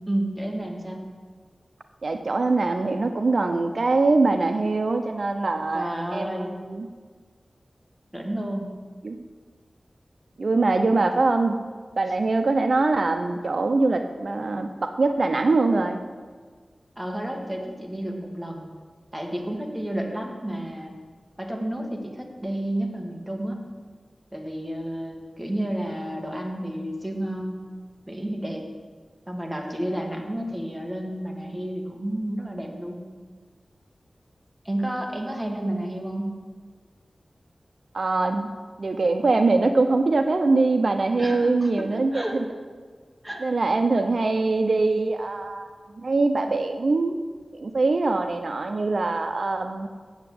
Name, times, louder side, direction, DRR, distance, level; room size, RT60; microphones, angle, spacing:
voice 1, 0.1-1.0 5.7-6.5 8.1-8.7 17.0-18.7 19.1-20.9 21.4-23.6 24.3-27.6 28.1-28.7 29.3-33.0 34.6-36.3 41.2-42.4 43.2-43.4, right 1 dB, 10° right, 1 dB, 1.9 m, -31 dB
voice 2, 2.0-6.9 9.0-9.3 10.4-11.5 12.0-16.0 37.9-38.5 38.8-42.4 43.4-45.7 46.0-47.2 47.5-49.9, right 3 dB, 65° right, 6 dB, 0.6 m, -23 dB
8.1 x 7.9 x 8.5 m, 1.6 s
wide cardioid pair, 75°, 0 cm